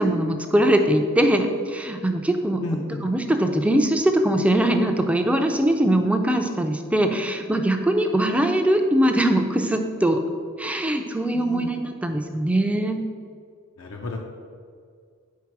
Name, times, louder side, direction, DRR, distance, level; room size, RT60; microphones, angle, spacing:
voice 1, 0.0-2.6 3.0-10.2 10.6-13.0, right 1 dB, 5° right, 5 dB, 0.4 m, -21 dB
voice 2, 2.6-3.1 11.3-11.8 13.8-14.2, left 2 dB, 75° left, 1 dB, 0.6 m, -32 dB
4.7 x 4.6 x 5.9 m, 2.1 s
head